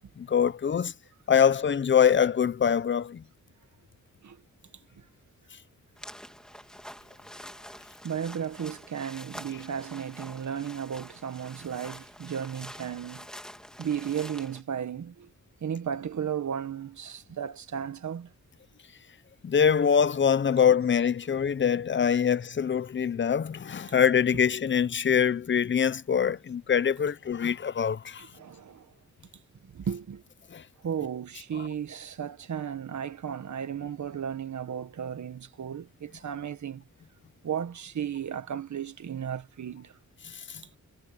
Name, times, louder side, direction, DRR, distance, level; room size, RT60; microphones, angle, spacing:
voice 1, 0.2-0.9 1.3-3.2 19.4-28.3 30.5-30.6 40.3-40.6, left 7 dB, 40° left, 0.6 m, -24 dB
sound 1, 6.0-14.6, equal, ahead, 2.4 m, -46 dB
voice 2, 8.0-13.3 13.8-15.3 15.6-18.3 21.3-21.4 28.2-28.9 29.7-30.2 30.8-36.8 37.4-39.9, right 8 dB, 70° right, 1.6 m, -34 dB
wide cardioid pair, 125°, 30 cm